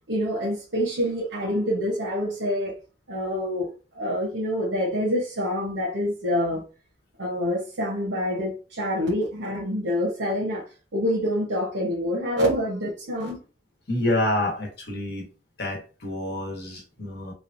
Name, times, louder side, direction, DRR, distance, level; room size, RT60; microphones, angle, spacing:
voice 1, 0.1-2.7 3.1-6.6 7.2-10.6 10.9-13.4, equal, 80° right, 1.0 m, -26 dB
voice 2, 13.9-15.3 15.6-17.3, left 1 dB, 55° left, 1.0 m, -28 dB
3.1 x 2.3 x 2.5 m
head